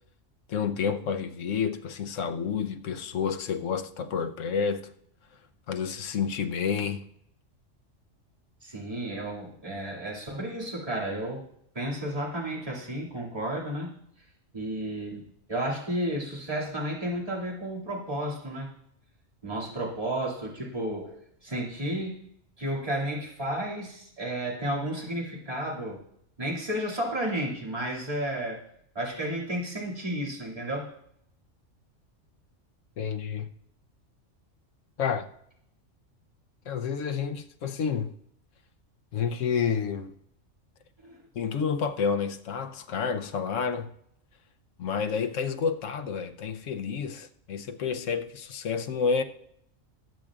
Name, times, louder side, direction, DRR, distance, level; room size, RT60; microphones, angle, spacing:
voice 1, 0.5-4.9 5.7-7.0 33.0-33.5 35.0-35.3 36.7-38.1 39.1-40.1 41.3-43.9 44.8-49.2, left 6 dB, 75° left, 1.1 m, -29 dB
voice 2, 8.6-11.5 11.7-13.9 14.5-18.7 19.4-22.3 22.6-26.0 26.4-28.6 28.9-30.9 41.0-41.2, right 1 dB, 30° right, 2.6 m, -32 dB
20.0 x 8.7 x 2.4 m
omnidirectional pair, 1.3 m